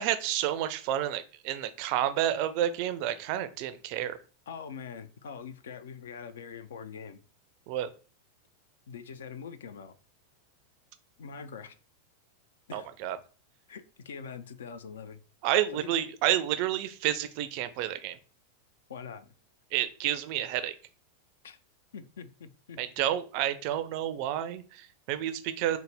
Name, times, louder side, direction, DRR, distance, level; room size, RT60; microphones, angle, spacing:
voice 1, 0.0-4.2 7.7-7.9 12.7-13.2 15.4-18.2 19.7-20.7 22.8-25.8, right 12 dB, 45° right, 11 dB, 0.3 m, -30 dB
voice 2, 4.5-7.2 8.9-9.9 11.2-11.8 12.7-12.9 13.7-15.2 15.7-15.9 18.9-19.3 21.4-21.6 21.9-23.1, left 6 dB, 60° left, 13 dB, 0.3 m, -43 dB
3.9 x 2.1 x 3.3 m, 0.37 s
figure-of-eight pair, 90°, 0 cm